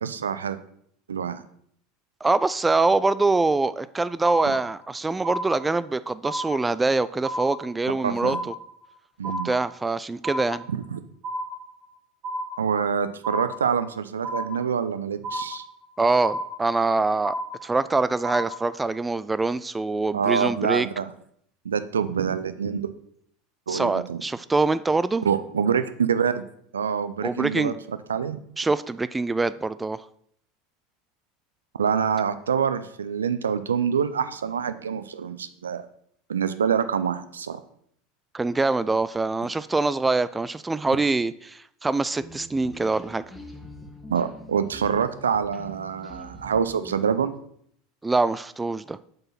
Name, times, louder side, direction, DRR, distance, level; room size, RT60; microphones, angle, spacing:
voice 1, 0.0-0.6 1.1-1.4 8.0-8.4 9.2-9.5 10.7-11.0 12.6-15.6 20.1-21.1 21.6-22.9 23.7-24.2 25.2-26.4 26.7-28.4 31.8-35.8 36.3-37.6 44.1-47.4, right 7 dB, 75° right, 13 dB, 0.5 m, -26 dB
voice 2, 2.2-8.5 9.4-10.6 16.0-17.3 17.6-20.9 23.7-25.3 27.2-27.7 28.6-30.0 38.3-43.2 48.0-49.0, right 3 dB, 15° right, 16 dB, 0.3 m, -24 dB
sound 1, 4.2-4.9 5.2-5.9 6.2-6.9 7.2-7.9 8.2-8.9 9.2-9.9 10.2-10.9 11.2-11.9 12.2-12.9 13.2-13.9 14.2-14.9 15.2-15.9 16.2-16.9 17.2-17.9 18.2-18.9, right 1 dB, 40° right, 2.6 m, -33 dB
sound 2, 42.2-47.4, equal, ahead, 1.6 m, -44 dB
7.6 x 4.7 x 5.6 m, 0.67 s
figure-of-eight pair, 75°, 0 cm